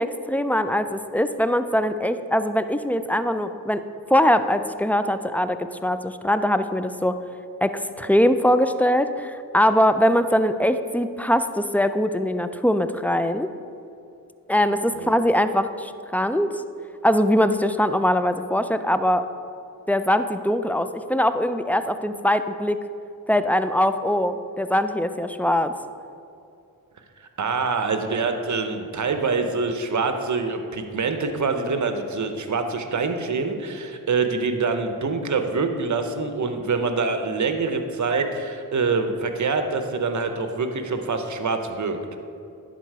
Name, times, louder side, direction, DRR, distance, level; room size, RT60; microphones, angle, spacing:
voice 1, 0.0-3.8 4.1-5.6 5.8-7.1 7.6-13.5 14.5-16.5 17.0-19.2 19.9-22.8 23.3-25.7, equal, 5° left, 10 dB, 0.3 m, -22 dB
voice 2, 27.2-42.0, right 4 dB, 50° right, 7 dB, 0.9 m, -25 dB
11.0 x 4.2 x 4.8 m, 2.6 s
cardioid pair, 50°, 39 cm